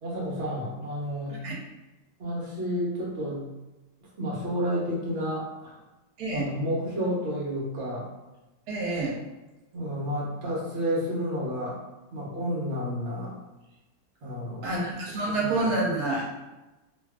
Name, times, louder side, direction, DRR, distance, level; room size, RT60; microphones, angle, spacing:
voice 1, 0.0-1.4 2.2-3.4 4.2-5.8 6.3-8.1 9.7-11.8 12.1-13.3 14.2-14.8 15.4-15.7, equal, 50° right, -6 dB, 1.1 m, -31 dB
voice 2, 8.7-9.2 14.6-16.3, right 2 dB, 80° right, -3 dB, 1.2 m, -28 dB
2.7 x 2.5 x 2.3 m, 1.0 s
omnidirectional pair, 1.6 m